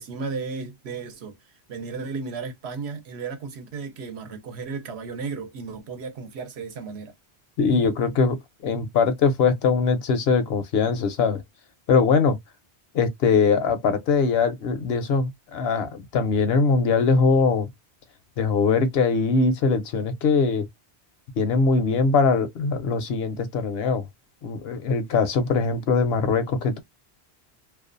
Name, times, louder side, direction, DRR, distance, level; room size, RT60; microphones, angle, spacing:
voice 1, 0.0-1.4 1.7-7.1, right 4 dB, 75° right, 0.9 m, -34 dB
voice 2, 7.6-8.4 8.6-11.4 11.9-12.4 12.9-17.7 18.4-20.7 21.4-24.0 24.4-26.8, left 4 dB, 70° left, 0.8 m, -21 dB
2.5 x 2.2 x 2.5 m
omnidirectional pair, 1.1 m